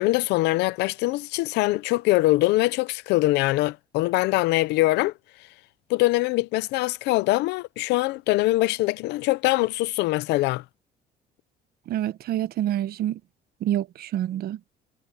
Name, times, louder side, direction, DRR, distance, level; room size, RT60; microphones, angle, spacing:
voice 1, 0.0-5.1 5.9-10.6, left 19 dB, 90° left, 0.7 m, -23 dB
voice 2, 11.9-13.2 13.6-14.6, right 12 dB, 65° right, 1.0 m, -27 dB
cardioid pair, 110°, 17 cm